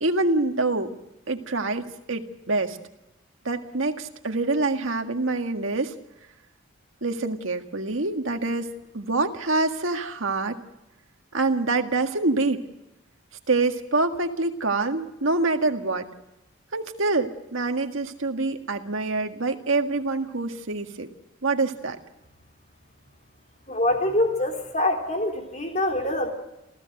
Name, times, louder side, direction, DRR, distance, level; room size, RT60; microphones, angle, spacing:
voice 1, 0.0-1.0 1.3-2.8 3.5-6.0 7.0-8.7 8.9-10.6 11.3-12.7 13.5-16.1 16.7-21.1 21.4-22.0, right 3 dB, 75° right, 5 dB, 1.8 m, -26 dB
voice 2, 23.7-26.3, left 1 dB, 35° left, 3 dB, 3.7 m, -25 dB
28.0 x 15.5 x 6.6 m, 0.96 s
head